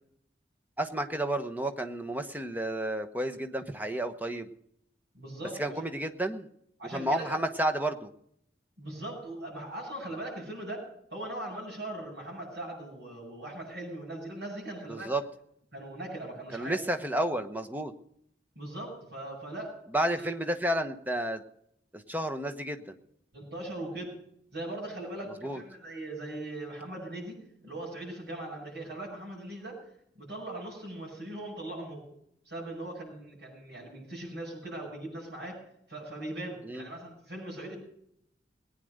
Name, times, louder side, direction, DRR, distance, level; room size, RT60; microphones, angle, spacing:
voice 1, 0.8-4.5 5.6-6.5 6.9-8.1 14.9-15.2 16.5-17.9 19.9-21.4 21.9-23.0 25.4-25.6 36.6-36.9, right 1 dB, 10° right, 8 dB, 1.0 m, -31 dB
voice 2, 5.1-5.7 6.8-7.4 8.8-15.1 15.7-16.7 18.6-19.8 20.1-20.3 23.3-24.2 24.5-27.4 27.6-29.8 30.2-32.0 32.4-35.6 35.9-37.8, right 1 dB, 85° right, -6 dB, 7.3 m, -40 dB
19.0 x 9.3 x 6.5 m, 0.71 s
head